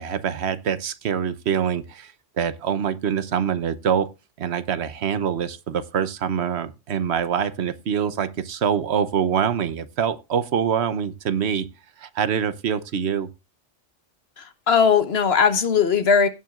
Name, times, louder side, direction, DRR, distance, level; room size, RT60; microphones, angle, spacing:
voice 1, 0.0-4.1 4.4-11.7 12.0-13.3, right 7 dB, 65° right, 1.0 m, -25 dB
voice 2, 14.4-16.3, left 6 dB, 60° left, 1.2 m, -19 dB
16.5 x 9.0 x 2.4 m
omnidirectional pair, 1.2 m